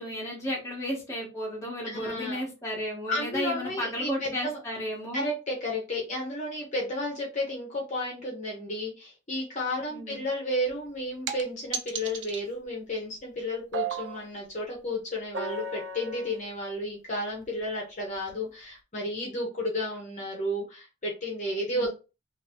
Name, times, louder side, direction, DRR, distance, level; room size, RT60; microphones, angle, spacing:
voice 1, 0.0-5.3 9.9-10.2 21.7-21.9, equal, 15° left, -3 dB, 1.1 m, -33 dB
voice 2, 1.8-2.4 3.1-4.6 5.1-21.9, left 1 dB, 35° left, -2 dB, 0.9 m, -32 dB
sound 1, 10.7-10.8 11.3-11.4 11.7-12.4 13.7-14.2 15.3-16.4 17.4-17.5 18.3-18.4, right 5 dB, 60° right, 0.4 m, -34 dB
2.9 x 2.5 x 2.8 m, 0.30 s
head